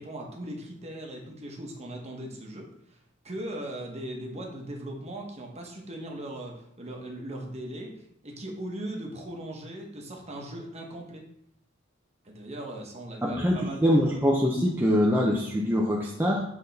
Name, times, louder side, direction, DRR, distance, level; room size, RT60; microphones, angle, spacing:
voice 1, 0.0-3.0 3.2-11.2 12.2-14.2, right 1 dB, 30° right, 1 dB, 1.1 m, -39 dB
voice 2, 13.2-16.4, equal, 10° right, -3 dB, 0.6 m, -24 dB
7.7 x 3.6 x 4.0 m, 0.75 s
head